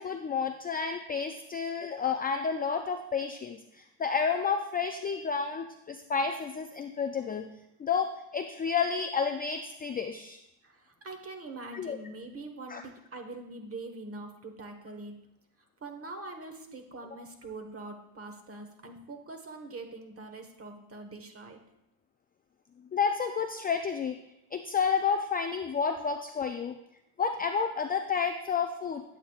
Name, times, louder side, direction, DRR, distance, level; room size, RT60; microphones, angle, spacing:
voice 1, 0.0-7.5 7.8-10.4 11.7-12.0 12.7-12.8 22.9-24.2 24.5-26.8 27.2-29.0, left 6 dB, 20° left, 5 dB, 0.3 m, -30 dB
voice 2, 10.6-15.2 15.8-21.6, right 2 dB, 30° right, 4 dB, 1.3 m, -43 dB
8.5 x 8.2 x 2.4 m, 0.84 s
supercardioid pair, 90°, 47 cm